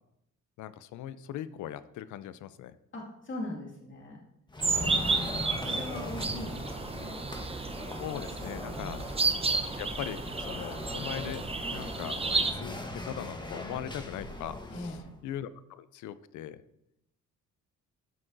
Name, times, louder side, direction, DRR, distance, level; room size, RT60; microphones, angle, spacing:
voice 1, 0.6-2.7 4.7-5.3 8.0-9.0 9.7-14.9 15.2-16.6, left 11 dB, 75° left, 15 dB, 0.5 m, -40 dB
voice 2, 2.9-4.2 4.8-7.2 8.7-9.1 14.7-15.1, left 1 dB, 40° left, -2 dB, 2.2 m, -41 dB
sound 1, 4.5-15.1, left 1 dB, 15° left, 1.2 m, -41 dB
sound 2, 4.6-12.5, right 3 dB, 20° right, 0.8 m, -32 dB
12.0 x 6.0 x 2.6 m, 0.79 s
cardioid pair, 90°, 30 cm